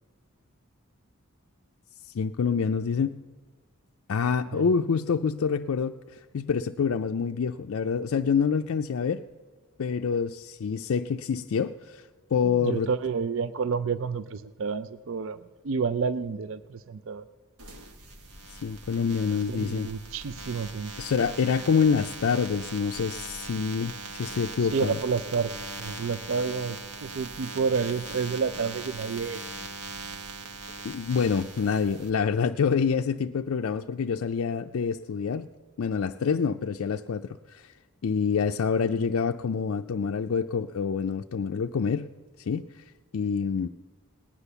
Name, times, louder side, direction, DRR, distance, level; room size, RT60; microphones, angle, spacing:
voice 1, 2.1-3.2 4.1-6.0 6.3-9.2 9.8-12.9 18.5-19.9 21.0-25.0 30.8-35.5 35.8-37.7 38.0-42.1 42.5-42.6 43.1-43.7, left 6 dB, 70° left, 5 dB, 0.4 m, -27 dB
voice 2, 12.4-15.4 15.6-17.2 19.5-20.9 24.6-29.4, right 5 dB, 60° right, 14 dB, 0.4 m, -30 dB
sound 1, 17.6-32.1, right 3 dB, 85° right, 1.4 m, -40 dB
18.0 x 9.9 x 6.9 m, 1.4 s
head